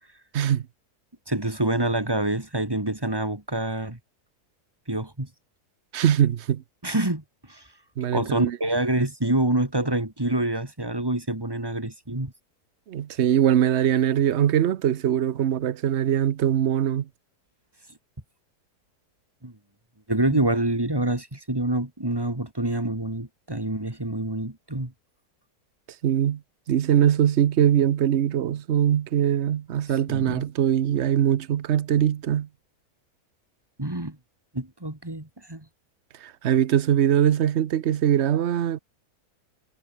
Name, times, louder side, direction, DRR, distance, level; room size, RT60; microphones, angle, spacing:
voice 1, 0.3-0.7 5.9-6.6 8.0-8.6 12.9-17.1 26.0-26.4 26.7-32.5 36.2-38.8, right 10 dB, 55° right, 0.9 m, -22 dB
voice 2, 1.3-4.0 4.9-5.3 6.8-7.7 8.1-12.3 19.4-19.5 20.1-24.9 29.9-30.4 33.8-34.2 34.5-35.6, right 1 dB, 15° right, 2.6 m, -26 dB
omnidirectional pair, 1.7 m